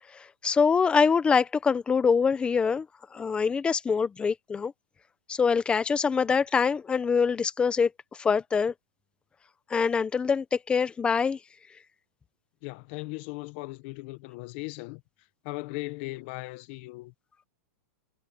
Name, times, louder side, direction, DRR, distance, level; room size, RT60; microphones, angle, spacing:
voice 1, 0.1-2.9 3.1-4.7 5.3-8.7 9.7-11.4, left 5 dB, 10° left, 1.0 m, -24 dB
voice 2, 12.6-15.0 15.4-17.1, left 23 dB, 45° left, 1.4 m, -38 dB
supercardioid pair, 155°, 9 cm